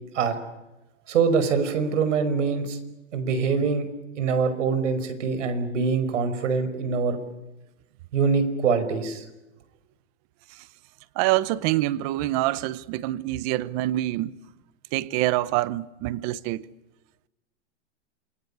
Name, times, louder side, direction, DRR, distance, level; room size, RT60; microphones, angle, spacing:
voice 1, 1.1-2.8 3.1-3.9 4.2-7.2 8.1-9.2, right 5 dB, 85° right, 5.4 m, -24 dB
voice 2, 11.2-14.3 14.9-16.6, right 16 dB, 30° right, 0.9 m, -25 dB
27.5 x 22.5 x 8.6 m
supercardioid pair, 165°, 35 cm